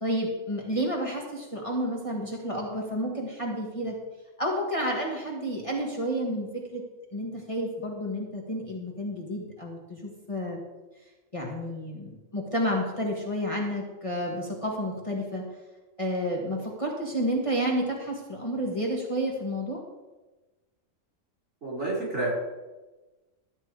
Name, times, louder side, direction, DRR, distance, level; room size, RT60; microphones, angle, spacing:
voice 1, 0.0-4.0 4.4-6.8 7.1-10.6 11.3-15.4 16.0-19.8, equal, 25° left, -3 dB, 1.8 m, -30 dB
voice 2, 21.6-22.3, right 2 dB, 60° right, -5 dB, 5.0 m, -29 dB
13.0 x 8.2 x 4.8 m, 1.2 s
omnidirectional pair, 1.4 m